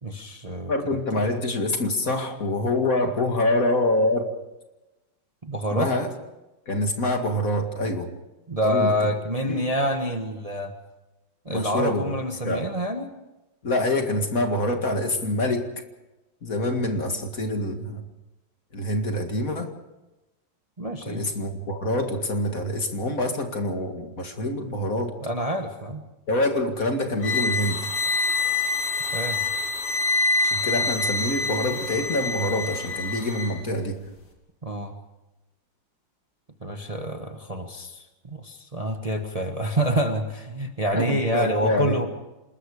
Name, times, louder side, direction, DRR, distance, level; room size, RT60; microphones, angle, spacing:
voice 1, 0.0-1.0 5.4-5.9 8.5-10.7 11.4-13.1 20.8-21.2 25.2-26.0 29.1-29.5 34.6-35.0 36.6-42.1, equal, 20° right, 4 dB, 1.3 m, -27 dB
voice 2, 0.7-4.3 5.7-6.1 6.7-8.1 8.6-8.9 9.4-9.6 11.5-12.1 12.4-12.7 13.6-15.7 16.4-18.0 18.7-19.7 21.1-25.2 26.3-27.9 30.4-34.1 40.9-42.1, left 1 dB, 50° left, 4 dB, 2.4 m, -26 dB
sound 1, 27.2-33.5, left 3 dB, 75° left, 3.8 m, -26 dB
27.0 x 20.5 x 5.0 m, 1.0 s
omnidirectional pair, 2.0 m